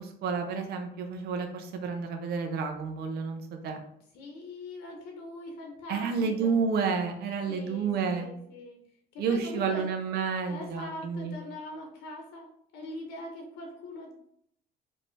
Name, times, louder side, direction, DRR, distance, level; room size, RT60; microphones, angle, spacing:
voice 1, 0.0-3.8 5.9-8.3 9.2-11.3, right 5 dB, 70° right, 5 dB, 0.8 m, -30 dB
voice 2, 4.1-6.6 7.5-8.8 9.1-9.9 10.5-12.5 12.7-14.1, left 1 dB, 85° left, 2 dB, 1.0 m, -42 dB
4.4 x 2.9 x 3.2 m, 0.70 s
cardioid pair, 110°, 17 cm